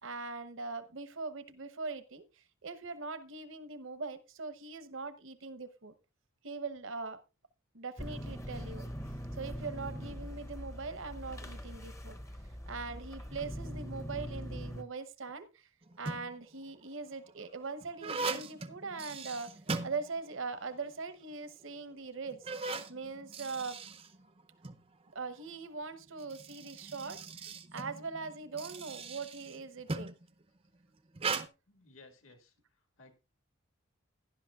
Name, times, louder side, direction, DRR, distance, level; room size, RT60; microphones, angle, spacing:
voice 1, 0.0-5.9 6.4-7.2 7.7-8.9 9.4-12.2 12.7-15.7 16.0-19.5 19.8-22.5 22.9-23.8 25.1-30.1, right 4 dB, 65° right, 12 dB, 0.9 m, -41 dB
sound 1, 8.0-14.8, equal, 15° left, 0.7 m, -42 dB
sound 2, 15.8-16.5 17.1-20.6 20.9-21.0 21.7-21.8 22.3-24.8 26.0-30.3 31.1-31.5, right 4 dB, 25° right, 0.5 m, -39 dB
voice 2, 31.7-32.5 33.0-33.1, left 3 dB, 70° left, 6 dB, 1.9 m, -57 dB
16.5 x 11.0 x 2.4 m, 0.29 s
head